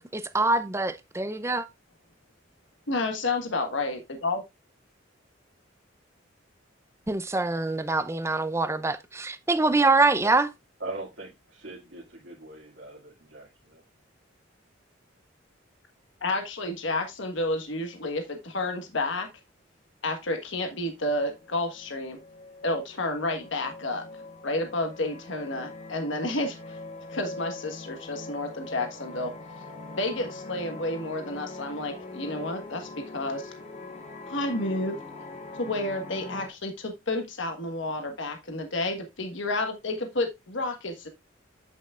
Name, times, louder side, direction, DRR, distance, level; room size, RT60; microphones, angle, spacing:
voice 1, 0.0-1.7 7.1-10.5, right 3 dB, 15° right, 0.5 m, -24 dB
voice 2, 2.9-4.4 16.2-19.3 20.0-22.2 22.6-24.0 24.4-26.8 27.1-29.3 29.9-33.5 34.3-35.0 35.6-41.1, left 2 dB, 70° left, 1.4 m, -30 dB
voice 3, 10.8-13.8, right 2 dB, 65° right, 2.1 m, -41 dB
sound 1, 20.7-20.8 21.1-36.5, left 2 dB, 35° left, 1.1 m, -42 dB
8.2 x 7.2 x 2.4 m
head